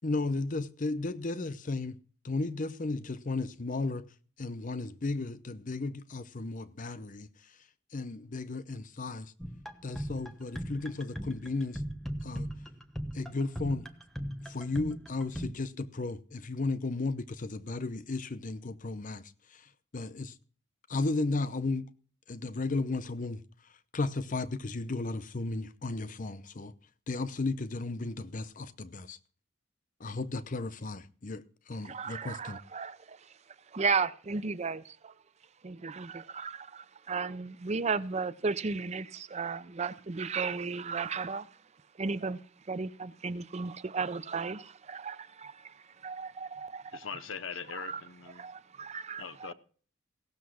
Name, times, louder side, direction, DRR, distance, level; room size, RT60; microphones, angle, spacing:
voice 1, 0.0-2.0 2.2-4.0 4.4-7.3 7.9-9.3 9.8-11.8 12.2-12.5 13.1-13.9 14.5-19.2 19.5-19.6 19.9-20.3 20.9-21.9 22.3-23.4 23.9-26.7 27.1-29.2 30.0-32.6, left 3 dB, 40° left, 0.7 m, -34 dB
sound 1, 9.4-15.5, equal, ahead, 1.1 m, -39 dB
voice 2, 31.8-33.3 33.7-35.1 35.6-41.6 42.0-42.4 42.7-45.6 46.0-47.0 47.8-48.0 48.4-49.5, right 4 dB, 30° right, 0.5 m, -35 dB
voice 3, 46.9-48.5 49.2-49.5, left 6 dB, 65° left, 0.9 m, -41 dB
17.0 x 6.8 x 6.3 m
head